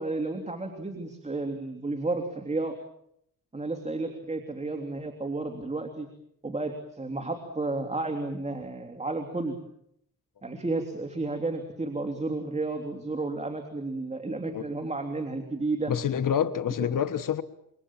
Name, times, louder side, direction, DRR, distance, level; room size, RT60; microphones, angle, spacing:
voice 1, 0.0-2.7 3.5-6.1 6.4-9.6 10.4-15.9 16.8-16.9, right 2 dB, 20° right, 3.1 m, -32 dB
voice 2, 15.9-17.4, left 8 dB, 65° left, 1.4 m, -27 dB
27.5 x 24.5 x 7.4 m
cardioid pair, 95°, 34 cm